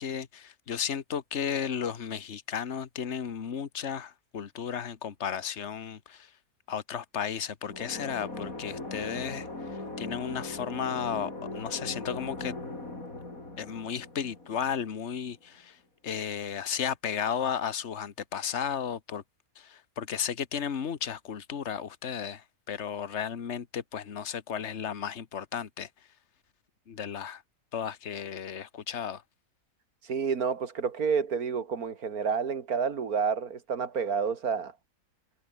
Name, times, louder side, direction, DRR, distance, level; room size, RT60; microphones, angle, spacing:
voice 1, 0.0-6.3 6.7-9.5 10.0-12.5 13.6-15.8 16.0-19.2 19.6-25.9 26.9-27.4 27.7-29.2, left 8 dB, 50° left, 1.6 m, -34 dB
sound 1, 7.6-15.3, left 2 dB, 65° left, 6.3 m, -40 dB
voice 2, 30.0-34.7, right 6 dB, 75° right, 2.3 m, -29 dB
omnidirectional pair, 1.6 m